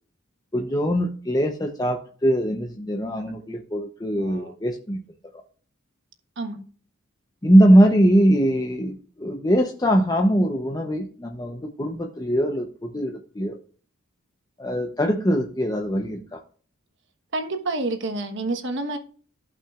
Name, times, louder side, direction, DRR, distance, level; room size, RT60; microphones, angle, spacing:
voice 1, 0.5-5.0 7.4-13.6 14.6-16.4, equal, 20° left, 0.7 m, -21 dB
voice 2, 17.3-19.0, right 2 dB, 60° right, 1.2 m, -28 dB
15.0 x 5.7 x 2.4 m
head